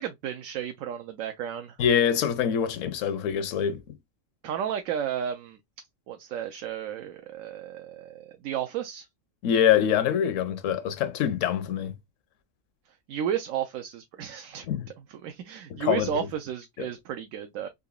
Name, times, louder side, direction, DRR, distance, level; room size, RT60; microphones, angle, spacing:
voice 1, 0.0-1.8 4.4-5.6 6.1-9.1 13.1-14.7 15.1-17.7, right 9 dB, 80° right, 1.0 m, -33 dB
voice 2, 1.8-3.8 9.4-11.9 14.7-14.8 15.7-16.3 16.8-16.9, left 9 dB, 75° left, 0.9 m, -25 dB
3.9 x 2.8 x 2.3 m
omnidirectional pair, 1.4 m